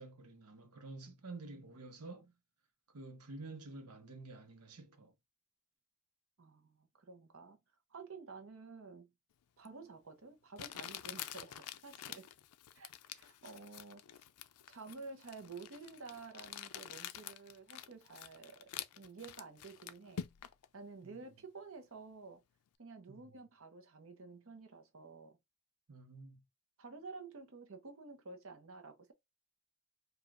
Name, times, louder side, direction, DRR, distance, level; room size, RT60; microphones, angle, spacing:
voice 1, 0.0-2.3 2.9-5.1 21.0-21.2 23.1-23.3 25.9-26.4, right 3 dB, 90° right, 0.9 m, -50 dB
voice 2, 6.4-7.6 7.9-9.1 9.6-12.3 12.7-14.0 14.7-20.3 20.7-22.4 22.8-25.4 26.8-29.1, right 4 dB, 60° right, 0.8 m, -51 dB
Crumpling crinkling, 9.7-9.8 10.6-20.7, left 10 dB, 85° left, 0.4 m, -48 dB
4.9 x 2.3 x 2.4 m
head